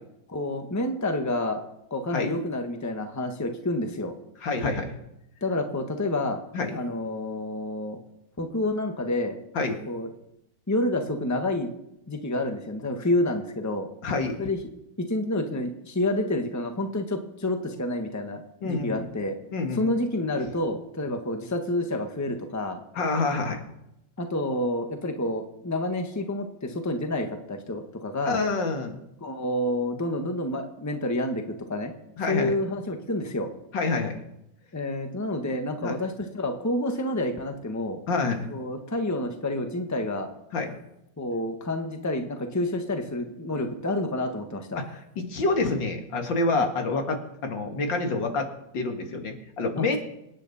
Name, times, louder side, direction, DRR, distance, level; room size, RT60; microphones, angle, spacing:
voice 1, 0.3-1.6 1.9-4.2 5.4-6.4 6.7-8.0 8.4-9.4 9.8-10.1 10.7-11.7 12.1-13.9 14.4-14.6 15.0-19.4 19.7-22.8 24.2-28.4 29.2-31.9 32.3-33.5 34.7-38.0 38.5-40.3 41.2-44.8 46.5-46.7 49.8-50.0, left 1 dB, 10° left, 5 dB, 1.1 m, -29 dB
voice 2, 4.4-5.0 6.5-6.8 9.5-9.8 14.0-14.4 18.6-19.1 19.5-19.9 23.0-23.6 28.3-29.0 32.2-32.6 33.7-34.2 35.8-36.0 38.1-38.5 40.5-40.7 44.8-48.5 48.7-50.0, left 3 dB, 80° left, 4 dB, 2.6 m, -27 dB
25.5 x 9.8 x 4.2 m, 0.83 s
omnidirectional pair, 2.0 m